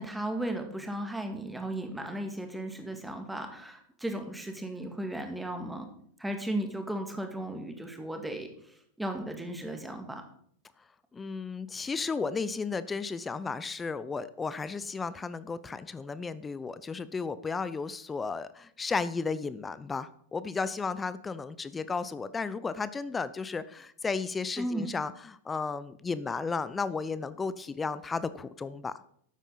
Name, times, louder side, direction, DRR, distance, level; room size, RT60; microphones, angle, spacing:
voice 1, 0.0-5.9 6.2-10.2 24.6-24.9, right 1 dB, 5° right, 5 dB, 1.9 m, -35 dB
voice 2, 11.1-28.9, left 4 dB, 15° left, 15 dB, 0.6 m, -34 dB
12.5 x 8.9 x 4.1 m, 0.65 s
figure-of-eight pair, 90°, 0 cm